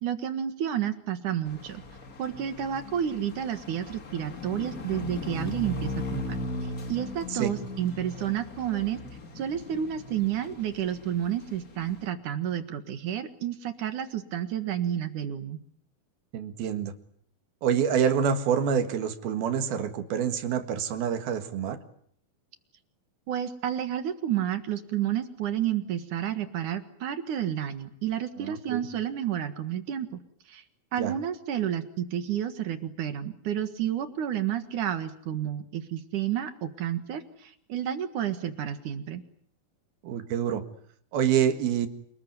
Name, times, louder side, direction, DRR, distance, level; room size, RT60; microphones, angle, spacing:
voice 1, 0.0-1.8 2.2-9.0 9.4-15.6 23.3-30.2 30.5-30.6 30.9-39.2, right 10 dB, 60° right, 10 dB, 2.9 m, -30 dB
sound 1, 1.4-12.1, left 2 dB, 30° left, 1.8 m, -38 dB
voice 2, 16.3-16.9 17.6-21.8 28.4-28.9 31.0-31.1 40.0-40.6 41.1-41.9, right 8 dB, 80° right, 9 dB, 3.7 m, -27 dB
28.5 x 20.0 x 9.6 m, 0.64 s
omnidirectional pair, 4.3 m